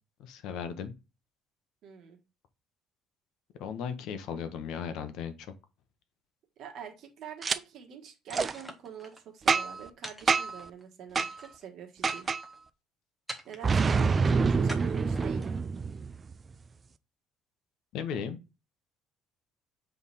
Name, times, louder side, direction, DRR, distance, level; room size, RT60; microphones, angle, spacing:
voice 1, 0.2-0.9 3.6-5.3 17.9-18.4, left 7 dB, 60° left, 0.9 m, -36 dB
voice 2, 1.8-2.2 6.6-12.3 13.4-15.5, right 8 dB, 45° right, 1.4 m, -45 dB
Boom, 7.4-7.6 8.3-8.5 9.5-9.9 10.3-10.6 11.2-11.3 12.0-12.4 13.6-16.3, right 5 dB, 20° right, 0.3 m, -26 dB
sound 1, 8.3-9.2 10.0-10.8 11.2-11.6 12.0-12.6 13.3-13.8 14.7-15.6, right 1 dB, ahead, 0.8 m, -44 dB
7.4 x 3.4 x 4.1 m
cardioid pair, 175°, 0 cm